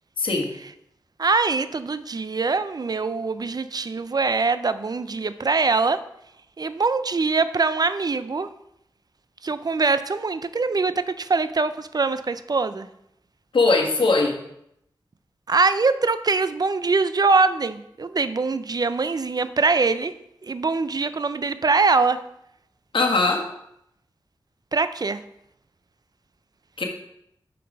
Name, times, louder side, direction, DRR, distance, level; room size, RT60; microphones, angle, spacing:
voice 1, 0.2-0.5 13.5-14.4 22.9-23.4 26.8-26.9, left 3 dB, 70° left, 1 dB, 1.4 m, -20 dB
voice 2, 1.2-6.0 6.6-8.5 9.4-12.9 15.5-20.1 20.4-22.2 24.7-25.2, right 4 dB, 50° right, 12 dB, 0.5 m, -23 dB
6.6 x 5.5 x 5.2 m, 0.78 s
wide cardioid pair, 60°, 9 cm